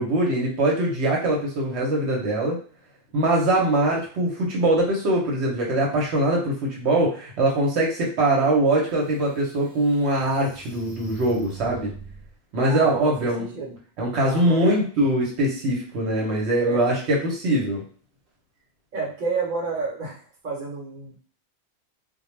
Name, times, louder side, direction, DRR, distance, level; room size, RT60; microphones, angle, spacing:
voice 1, 0.0-2.6 3.1-11.9 12.5-13.5 14.0-17.8, right 1 dB, 75° right, -2 dB, 1.0 m, -22 dB
sound 1, 8.5-8.6 9.2-12.3, right 6 dB, 20° right, 0.5 m, -42 dB
voice 2, 12.6-13.8 14.2-14.8 16.7-16.8 18.9-21.2, right 4 dB, 45° right, -2 dB, 0.9 m, -30 dB
2.2 x 2.1 x 3.1 m, 0.42 s
omnidirectional pair, 1.1 m